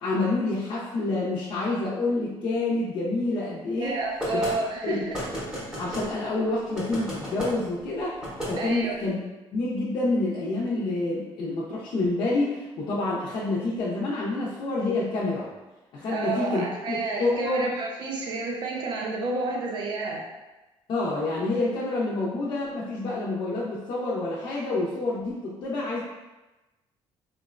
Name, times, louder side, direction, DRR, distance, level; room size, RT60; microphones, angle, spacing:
voice 1, 0.0-4.0 4.3-4.5 4.8-5.0 5.8-8.2 8.5-9.2 9.5-15.5 15.9-17.7 20.9-26.0, left 2 dB, 50° left, -7 dB, 0.5 m, -28 dB
voice 2, 3.8-5.2 8.6-9.0 16.1-20.2, right 3 dB, 45° right, -1 dB, 0.5 m, -30 dB
sound 1, 4.2-4.5 5.1-6.1 6.8-7.5 8.2-8.5, equal, 5° right, 0.7 m, -32 dB
3.7 x 2.1 x 2.4 m, 1.1 s
cardioid pair, 175°, 10 cm